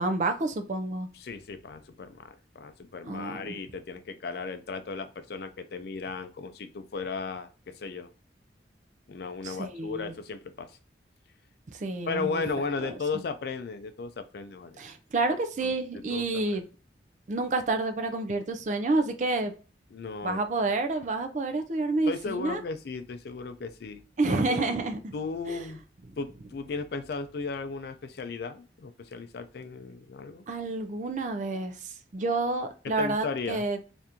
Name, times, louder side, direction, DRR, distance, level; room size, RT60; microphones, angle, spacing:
voice 1, 0.0-1.1 3.1-3.4 9.4-10.1 11.7-12.4 12.8-12.9 14.8-16.6 17.3-19.5 20.2-22.6 24.2-25.1 25.5-25.7 30.5-33.8, right 2 dB, 40° right, 7 dB, 0.4 m, -29 dB
voice 2, 1.1-8.1 9.1-10.8 12.1-14.8 15.6-15.7 16.1-16.6 19.9-20.4 22.1-24.0 24.5-24.7 25.1-25.8 26.2-30.4 32.8-33.7, left 4 dB, 60° left, 9 dB, 0.4 m, -35 dB
3.5 x 2.6 x 2.8 m, 0.37 s
head